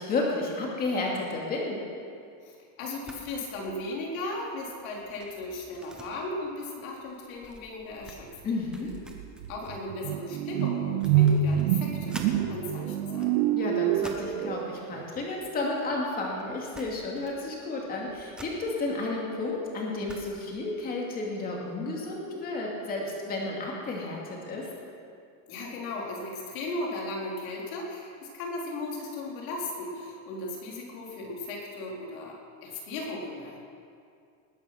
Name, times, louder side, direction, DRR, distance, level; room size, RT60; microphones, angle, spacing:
voice 1, 0.0-1.8 8.4-8.9 13.5-24.7, left 2 dB, 20° left, -2 dB, 2.5 m, -32 dB
voice 2, 2.4-8.4 9.5-13.4 25.5-33.6, left 2 dB, 80° left, -2 dB, 4.4 m, -36 dB
sound 1, 3.0-3.4 3.7-3.9 4.3-12.4 13.0-14.4 15.3-16.1 16.4-16.5 16.7-17.5 17.8-20.6, right 1 dB, ahead, 0.3 m, -49 dB
sound 2, 8.4-8.5 8.9-15.0, right 9 dB, 50° right, 0.7 m, -27 dB
19.5 x 10.5 x 6.1 m, 2.3 s
cardioid pair, 175°, 41 cm